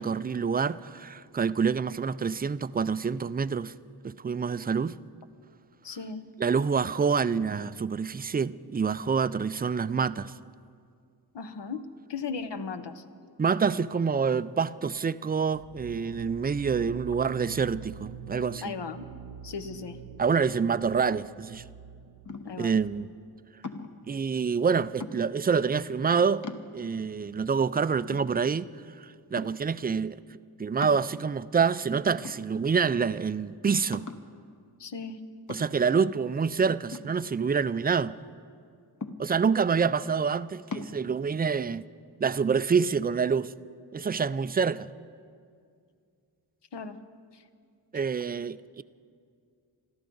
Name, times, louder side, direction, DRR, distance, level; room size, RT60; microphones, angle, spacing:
voice 1, 0.0-3.7 4.0-5.0 6.4-10.3 13.4-18.7 20.2-21.6 22.6-23.1 24.1-26.5 26.7-28.7 29.0-34.1 35.5-38.1 39.2-41.8 42.2-43.5 43.9-44.9 47.9-48.8, right 6 dB, 25° right, 0.3 m, -27 dB
voice 2, 5.8-6.3 11.3-13.3 18.6-19.1 19.4-20.0 22.4-22.7 34.8-35.2 46.7-47.0 47.3-47.4, left 5 dB, 75° left, 0.9 m, -37 dB
sound 1, 15.5-23.2, right 7 dB, 80° right, 0.6 m, -45 dB
sound 2, 22.3-22.7 23.6-24.1 25.0-25.5 26.0-26.1 26.4-27.1 27.6-27.7 28.1-28.9 29.4-29.8 30.8-31.5 32.2-32.9 33.2-33.3 33.9-34.4 35.5-36.0 36.9-37.8 39.0-39.6 40.7-41.0, left 3 dB, 45° left, 1.0 m, -40 dB
27.0 x 13.0 x 3.9 m
wide cardioid pair, 65°, 42 cm